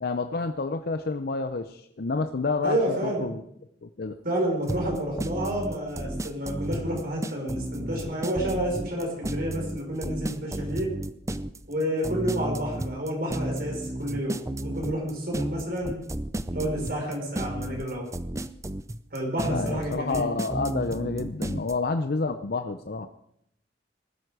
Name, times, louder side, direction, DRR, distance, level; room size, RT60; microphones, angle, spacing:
voice 1, 0.0-3.4 3.8-4.2 19.4-23.1, left 3 dB, 55° left, 9 dB, 0.6 m, -29 dB
voice 2, 2.6-3.3 4.2-11.0 11.7-16.0 16.5-18.1 19.1-20.3, right 1 dB, 55° right, 0 dB, 4.9 m, -30 dB
sound 1, 4.7-21.7, right 1 dB, 15° right, 0.6 m, -32 dB
19.5 x 12.5 x 4.9 m, 0.74 s
head